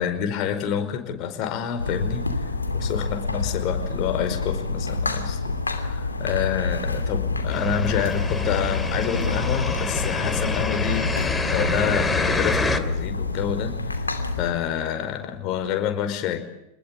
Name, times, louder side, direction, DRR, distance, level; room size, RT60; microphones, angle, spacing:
voice 1, 0.0-2.3 2.7-13.7 14.4-16.4, left 9 dB, 45° left, 7 dB, 5.0 m, -28 dB
sound 1, 1.8-14.5, left 3 dB, 90° left, 2.7 m, -27 dB
sound 2, 7.5-12.8, left 3 dB, 15° left, 2.7 m, -27 dB
28.0 x 20.5 x 8.7 m, 0.84 s
figure-of-eight pair, 90°, 0 cm